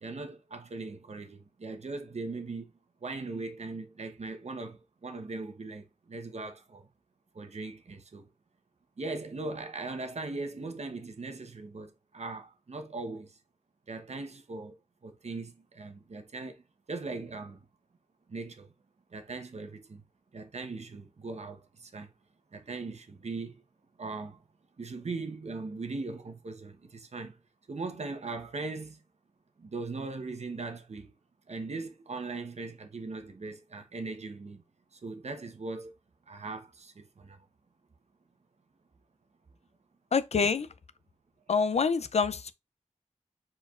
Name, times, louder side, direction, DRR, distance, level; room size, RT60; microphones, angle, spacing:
voice 1, 0.0-2.7 3.0-6.9 7.3-8.3 9.0-13.4 13.9-14.8 15.0-16.6 16.9-17.6 18.3-18.7 19.1-20.0 20.3-22.1 22.5-23.5 24.0-24.4 24.8-27.4 27.7-29.0 29.6-31.1 31.5-34.6 34.9-36.0 36.3-37.4, right 3 dB, 65° right, 1.0 m, -39 dB
voice 2, 40.1-40.7 41.5-42.5, left 5 dB, 60° left, 0.5 m, -26 dB
4.6 x 4.4 x 2.5 m
wide cardioid pair, 60°, 12 cm